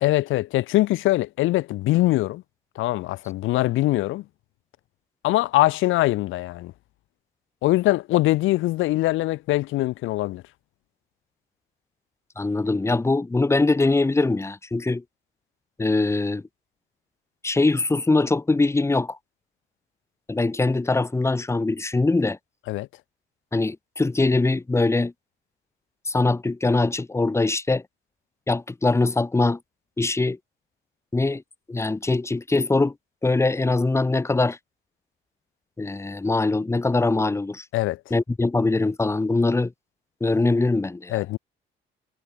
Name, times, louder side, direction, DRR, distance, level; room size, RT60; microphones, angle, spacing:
voice 1, 0.0-2.4 2.8-4.2 5.2-6.7 7.6-10.4 22.7-22.9 37.7-38.0 41.1-41.4, left 17 dB, 80° left, 0.5 m, -22 dB
voice 2, 12.4-15.0 15.8-16.4 17.4-19.2 20.3-22.4 23.5-25.1 26.1-27.8 28.5-29.6 30.0-30.4 31.1-31.4 31.7-32.9 33.2-34.6 35.8-37.6 38.1-39.7 40.2-41.2, left 3 dB, 15° left, 0.8 m, -22 dB
cardioid pair, 90°, 20 cm